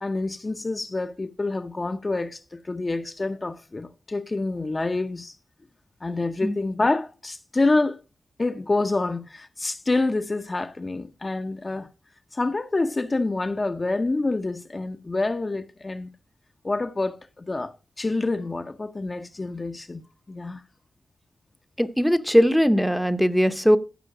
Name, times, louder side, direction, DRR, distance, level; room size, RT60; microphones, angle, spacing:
voice 1, 0.0-5.4 6.0-8.0 8.4-11.9 12.3-16.1 16.6-20.0 20.3-20.6, left 2 dB, 30° left, 0.7 m, -27 dB
voice 2, 21.8-23.8, equal, ahead, 0.8 m, -19 dB
15.0 x 5.6 x 4.8 m
wide cardioid pair, 85°, 0 cm